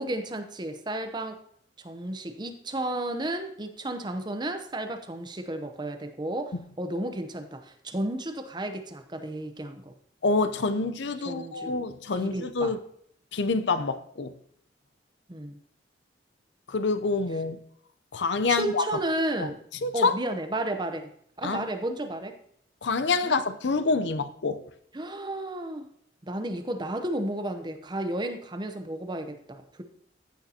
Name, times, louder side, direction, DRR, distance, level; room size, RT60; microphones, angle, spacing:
voice 1, 0.0-1.4 1.8-9.9 11.3-11.7 12.2-12.7 15.3-15.6 18.5-19.6 19.9-21.1 21.4-22.4 23.2-23.3 24.9-25.8 26.2-29.8, right 1 dB, 25° right, 0.8 m, -32 dB
voice 2, 10.2-12.8 13.3-14.3 16.7-17.6 18.1-18.8 19.4-19.5 19.8-20.1 21.4-21.7 22.8-24.6, left 3 dB, 75° left, 0.6 m, -27 dB
14.5 x 6.6 x 2.8 m
head